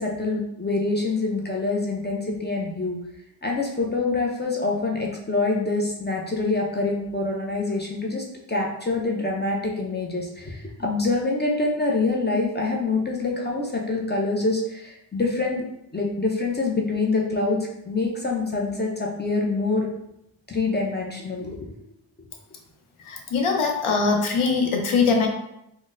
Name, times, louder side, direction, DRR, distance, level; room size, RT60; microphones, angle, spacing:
voice 1, 0.0-3.0 3.4-15.6 15.9-19.9 20.5-21.7, left 3 dB, 25° left, -1 dB, 0.3 m, -25 dB
voice 2, 23.0-25.3, left 4 dB, 90° left, 2 dB, 0.7 m, -22 dB
3.9 x 2.1 x 2.5 m, 0.81 s
wide cardioid pair, 170°, 49 cm